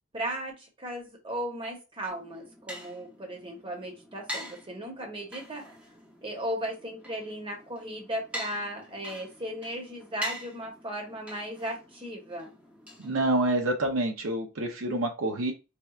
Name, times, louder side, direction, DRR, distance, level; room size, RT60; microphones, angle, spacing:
voice 1, 0.1-5.6 6.2-12.5, equal, 25° right, 1 dB, 0.9 m, -36 dB
sound 1, 2.1-13.7, equal, 5° right, 0.6 m, -44 dB
voice 2, 13.0-15.5, right 2 dB, 70° right, 4 dB, 0.6 m, -27 dB
4.2 x 2.2 x 2.3 m, 0.29 s
head